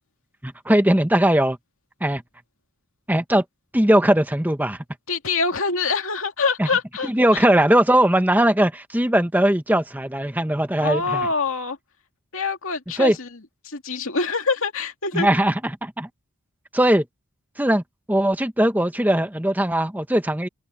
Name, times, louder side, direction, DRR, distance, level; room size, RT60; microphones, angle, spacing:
voice 1, 0.4-1.6 2.0-2.2 3.1-3.4 3.7-4.8 6.6-6.7 7.0-11.3 13.0-13.2 15.1-16.1 16.7-17.0 17.6-17.8 18.1-20.5, right 1 dB, 10° right, 1.1 m, -19 dB
voice 2, 5.1-7.4 10.8-11.8 12.3-13.3 13.6-15.3, left 4 dB, 65° left, 2.6 m, -25 dB
head